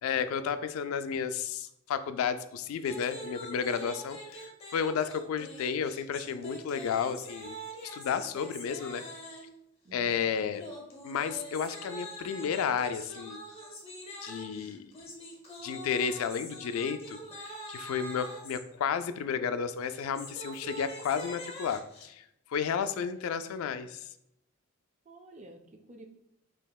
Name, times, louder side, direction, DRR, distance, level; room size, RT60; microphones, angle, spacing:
voice 1, 0.0-7.6 7.8-9.0 9.9-10.6 11.0-13.4 14.2-14.9 15.6-22.2 22.5-24.1, left 7 dB, 80° left, 11 dB, 0.3 m, -32 dB
sound 1, 2.8-9.6 10.5-18.6 19.8-22.1, equal, 30° left, 0.8 m, -44 dB
voice 2, 9.8-10.3 25.1-26.1, right 2 dB, 35° right, 4 dB, 0.5 m, -51 dB
5.5 x 2.8 x 2.3 m, 0.80 s
head